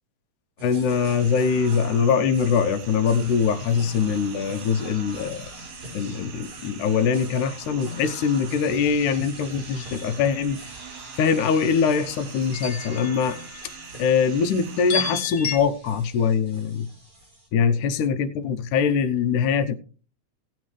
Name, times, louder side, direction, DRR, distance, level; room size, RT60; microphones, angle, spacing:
voice 1, 0.6-5.5 5.9-10.6 11.2-13.4 14.0-16.9 17.5-19.8, left 6 dB, 90° left, 2.4 m, -23 dB
sound 1, 0.6-17.5, equal, 30° right, 5.9 m, -44 dB
sound 2, 0.9-15.2, right 7 dB, 75° right, 2.8 m, -43 dB
sound 3, 9.8-10.4 12.5-13.9 14.9-15.6, left 5 dB, 45° left, 1.9 m, -32 dB
17.5 x 7.6 x 3.2 m
omnidirectional pair, 3.5 m